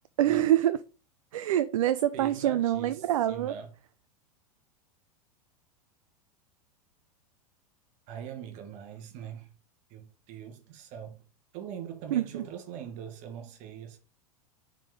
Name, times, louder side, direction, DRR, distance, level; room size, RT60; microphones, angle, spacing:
voice 1, 0.2-0.8 1.3-3.5 12.1-12.4, right 12 dB, 60° right, 0.4 m, -25 dB
voice 2, 2.1-3.7 8.1-9.5 9.9-11.2 11.5-14.0, right 8 dB, 40° right, 1.1 m, -42 dB
10.0 x 3.7 x 3.4 m
figure-of-eight pair, 90°, 20 cm